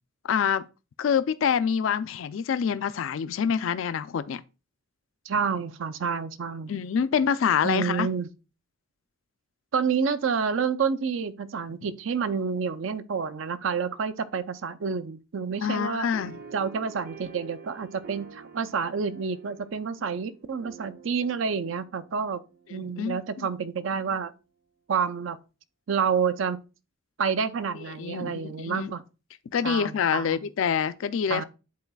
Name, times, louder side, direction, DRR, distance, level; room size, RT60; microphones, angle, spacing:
voice 1, 0.2-0.6 1.0-4.4 6.7-8.1 15.6-16.4 22.7-23.5 28.0-28.9 29.5-31.4, left 7 dB, 70° left, 0.4 m, -26 dB
voice 2, 5.3-6.7 7.6-8.3 9.7-16.1 16.5-22.4 22.7-24.3 24.9-25.4 25.9-26.6 27.2-29.0 29.6-30.4 31.3-31.4, right 6 dB, 70° right, 0.5 m, -29 dB
sound 1, 16.1-23.0, right 6 dB, 50° right, 0.8 m, -48 dB
10.5 x 4.0 x 2.2 m
head